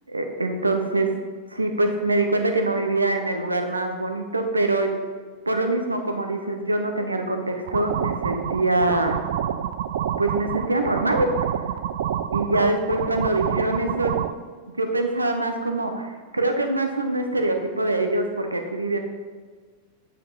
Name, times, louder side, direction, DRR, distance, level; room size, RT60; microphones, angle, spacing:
voice 1, 0.1-1.1 1.5-4.9 5.5-9.2 10.2-11.3 12.3-14.1 14.8-19.0, right 2 dB, 80° right, 5 dB, 0.8 m, -24 dB
sound 1, 7.7-14.3, right 10 dB, 55° right, 0.3 m, -28 dB
8.7 x 5.4 x 4.0 m, 1.5 s
figure-of-eight pair, 90°, 0 cm